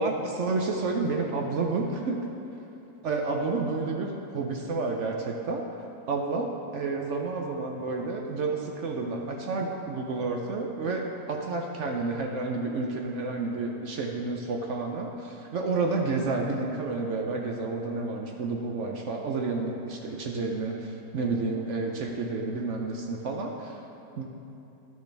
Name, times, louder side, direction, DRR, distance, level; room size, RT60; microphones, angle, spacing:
voice 1, 0.0-2.2 3.0-5.6 6.1-23.8 24.2-24.3, right 3 dB, 60° right, 1 dB, 0.8 m, -30 dB
11.5 x 6.4 x 3.4 m, 2.9 s
omnidirectional pair, 1.7 m